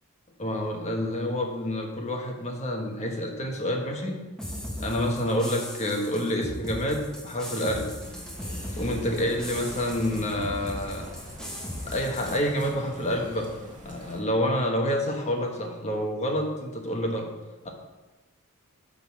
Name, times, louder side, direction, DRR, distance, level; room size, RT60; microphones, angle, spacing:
voice 1, 0.4-4.2 4.8-7.9 8.8-11.1 11.9-13.5 13.8-17.3, equal, 30° left, 1 dB, 1.3 m, -28 dB
sound 1, 4.4-12.4, equal, 5° left, 1.1 m, -38 dB
sound 2, 8.0-14.2, equal, 35° right, 1.9 m, -43 dB
8.9 x 4.1 x 6.2 m, 1.2 s
head